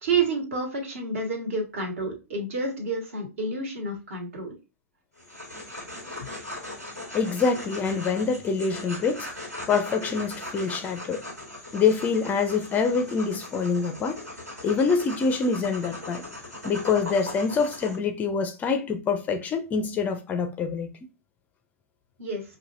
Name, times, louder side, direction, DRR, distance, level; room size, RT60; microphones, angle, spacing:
voice 1, 0.0-4.5 22.2-22.4, right 3 dB, 55° right, 1.5 m, -29 dB
sound 1, 5.2-18.0, left 1 dB, 85° right, 1.8 m, -39 dB
voice 2, 7.1-9.3 9.7-11.2 11.7-14.2 14.6-16.2 16.6-20.9, left 5 dB, 20° left, 0.4 m, -25 dB
5.4 x 2.6 x 2.4 m
figure-of-eight pair, 105°, 8 cm